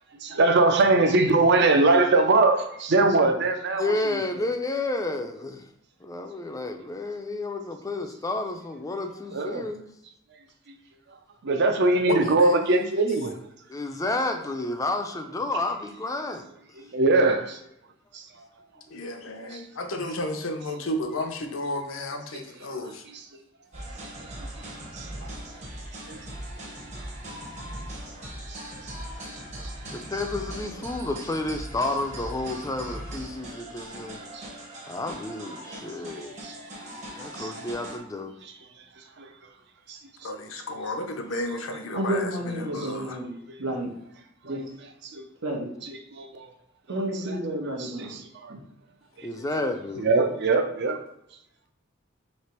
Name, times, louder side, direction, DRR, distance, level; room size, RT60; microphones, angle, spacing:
voice 1, 0.2-4.2 9.3-9.7 10.7-10.8 11.4-13.4 16.8-17.6 18.1-18.5 19.5-19.6 22.7-22.8 24.2-24.7 24.9-25.3 26.1-26.2 28.5-28.9 29.6-29.7 34.3-34.5 35.6-35.8 36.4-36.6 37.4-37.5 38.4-38.5 39.2-39.3 39.9-40.0 42.8-43.0 43.5-43.6 44.4-44.5 45.0-45.3 45.8-46.4 47.3-47.4 47.8-48.5 49.2-49.3 50.0-51.0, right 3 dB, 60° right, 5 dB, 0.6 m, -23 dB
voice 2, 3.8-5.7 6.0-9.8 13.7-16.5 28.2-28.4 29.9-34.2 34.9-36.3 37.2-38.3 49.2-50.1, left 2 dB, 15° left, 6 dB, 0.4 m, -31 dB
voice 3, 12.1-12.9 18.9-23.1 29.8-29.9 40.2-43.2, left 1 dB, 80° left, 5 dB, 0.6 m, -32 dB
sound 1, 23.7-38.0, right 1 dB, 35° right, 0.9 m, -39 dB
voice 4, 41.9-43.9 44.4-44.6 45.4-45.7 46.9-48.2 48.5-48.6, right 1 dB, 90° right, 0 dB, 1.1 m, -31 dB
3.3 x 2.9 x 4.4 m, 0.77 s
head